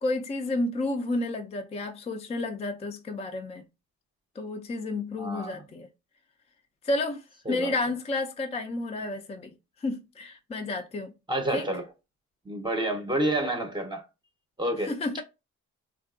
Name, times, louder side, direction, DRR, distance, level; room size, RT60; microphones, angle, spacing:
voice 1, 0.0-3.7 4.4-5.9 6.8-9.5 9.8-11.1 11.5-11.7 14.8-15.2, left 2 dB, 20° left, 0.4 m, -31 dB
voice 2, 5.2-5.5 7.5-7.7 11.3-11.8 12.4-14.1 14.6-15.2, right 1 dB, 15° right, 0.7 m, -29 dB
3.6 x 2.3 x 2.3 m
cardioid pair, 90°, 30 cm